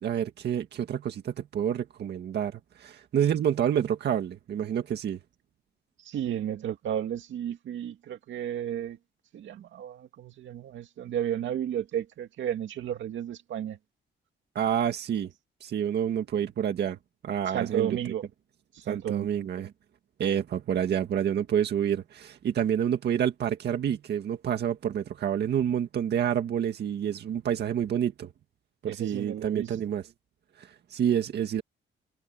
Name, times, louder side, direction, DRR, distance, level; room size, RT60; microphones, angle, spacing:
voice 1, 0.0-5.2 14.6-15.3 15.6-17.0 17.2-18.0 18.9-19.7 20.2-28.3 28.8-30.0 30.6-31.6, right 9 dB, 60° right, 1.9 m, -28 dB
voice 2, 6.0-9.0 9.3-13.8 17.5-18.2 18.7-19.3 28.8-29.8, right 10 dB, 85° right, 2.3 m, -33 dB
wide cardioid pair, 170°, 19 cm